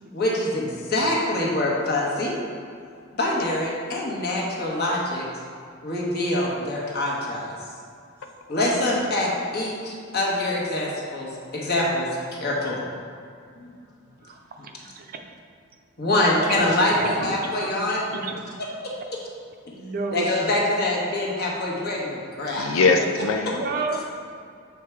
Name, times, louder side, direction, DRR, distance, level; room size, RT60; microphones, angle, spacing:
voice 1, 0.1-2.3 3.2-5.3 5.8-7.5 8.5-12.8 13.6-13.7 16.0-18.0 18.6-18.9 20.1-22.7, left 1 dB, 50° left, -3 dB, 1.2 m, -25 dB
voice 2, 8.5-9.5 22.6-23.6, left 4 dB, 75° left, 5 dB, 0.4 m, -24 dB
voice 3, 14.2-15.2 16.4-18.4 19.7-20.3 21.8-21.9 22.9-23.0 23.5-24.0, right 3 dB, 45° right, 3 dB, 0.5 m, -32 dB
7.2 x 3.6 x 4.5 m, 2.4 s
head